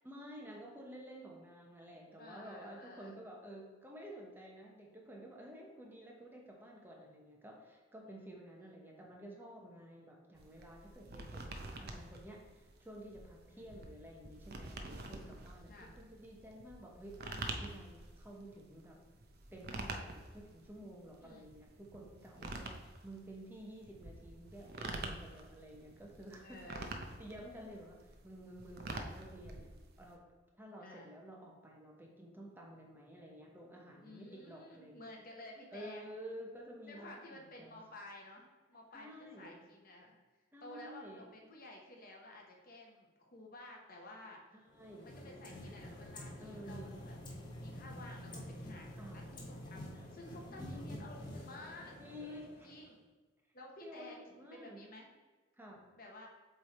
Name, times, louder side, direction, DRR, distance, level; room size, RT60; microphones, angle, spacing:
voice 1, 0.0-19.0 19.5-24.7 25.0-26.8 27.2-30.2 30.6-35.1 35.7-37.1 37.6-37.8 38.9-39.6 40.5-41.2 44.5-45.1 46.4-47.1 49.0-49.3 50.5-51.0 52.0-52.5 53.8-54.9 55.6-55.8, right 1 dB, 10° right, -1 dB, 1.0 m, -52 dB
voice 2, 2.2-3.2 13.5-13.8 15.7-15.9 21.2-21.5 22.4-22.8 26.4-26.9 30.8-31.1 34.0-36.1 36.9-40.1 40.6-44.4 45.0-47.2 47.6-53.0 53.5-54.2 54.5-55.1 56.0-56.3, left 2 dB, 50° left, 0 dB, 1.2 m, -53 dB
sound 1, 10.4-30.1, right 2 dB, 55° right, 0.7 m, -47 dB
sound 2, 44.7-53.0, left 1 dB, 25° left, 1.2 m, -48 dB
7.8 x 3.4 x 4.3 m, 1.3 s
head